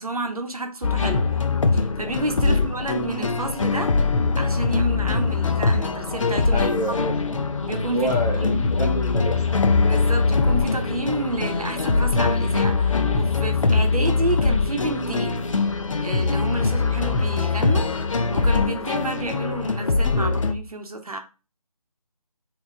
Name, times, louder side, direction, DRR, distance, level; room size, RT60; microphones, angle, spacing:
voice 1, 0.0-1.4 1.7-3.9 4.3-6.7 7.6-8.1 8.4-8.6 9.8-15.4 16.0-21.2, right 2 dB, 70° right, 0.8 m, -30 dB
sound 1, 0.8-20.5, left 4 dB, 55° left, 0.4 m, -22 dB
voice 2, 6.5-7.4 7.9-10.0 20.1-20.4, left 1 dB, 85° left, 1.2 m, -29 dB
2.8 x 2.0 x 3.5 m
figure-of-eight pair, 160°, 20 cm